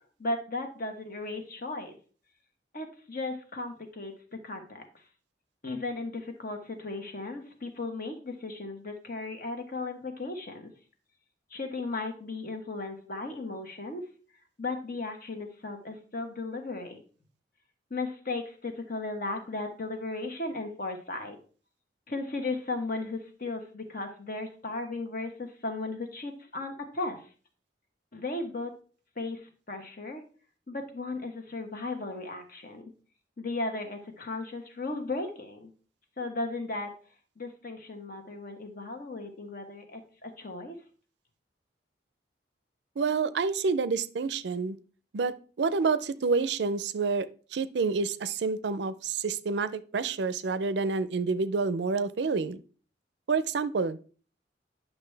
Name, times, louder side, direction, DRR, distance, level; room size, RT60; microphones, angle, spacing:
voice 1, 0.2-2.0 2.7-4.8 5.6-10.7 11.5-14.0 14.6-17.0 17.9-21.4 22.1-27.2 28.1-28.7 29.2-30.2 30.7-32.9 33.4-35.7 36.2-36.9 37.4-40.7, left 2 dB, 50° left, 5 dB, 1.2 m, -36 dB
voice 2, 43.0-44.8 45.1-52.6 53.3-54.0, right 4 dB, 65° right, 15 dB, 0.4 m, -28 dB
9.6 x 5.9 x 3.3 m, 0.41 s
head